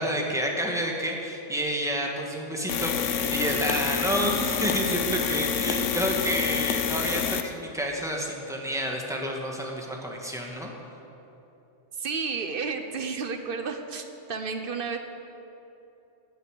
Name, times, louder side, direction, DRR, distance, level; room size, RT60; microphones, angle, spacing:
voice 1, 0.0-10.7, equal, 5° right, 0 dB, 1.4 m, -29 dB
sound 1, 2.7-7.5, left 8 dB, 85° left, 1.1 m, -27 dB
voice 2, 12.0-15.0, right 5 dB, 50° right, 6 dB, 1.0 m, -32 dB
17.5 x 6.7 x 6.3 m, 3.0 s
omnidirectional pair, 1.2 m